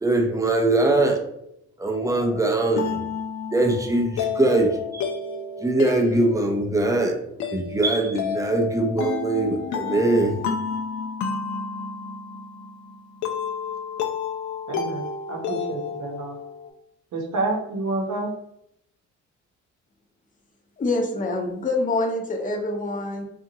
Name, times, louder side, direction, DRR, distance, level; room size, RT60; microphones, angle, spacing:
voice 1, 0.0-1.2 1.8-3.0 3.5-5.1 5.6-7.2 7.5-10.3, right 2 dB, 10° right, 2 dB, 0.5 m, -22 dB
sound 1, 1.9-16.7, left 6 dB, 70° left, 0.5 m, -31 dB
voice 2, 14.7-15.0 15.3-16.3 17.1-18.3, right 2 dB, 65° right, 1 dB, 0.8 m, -28 dB
voice 3, 20.8-23.2, left 2 dB, 25° left, 2 dB, 0.6 m, -25 dB
2.8 x 2.4 x 2.7 m, 0.77 s
cardioid pair, 90°, 30 cm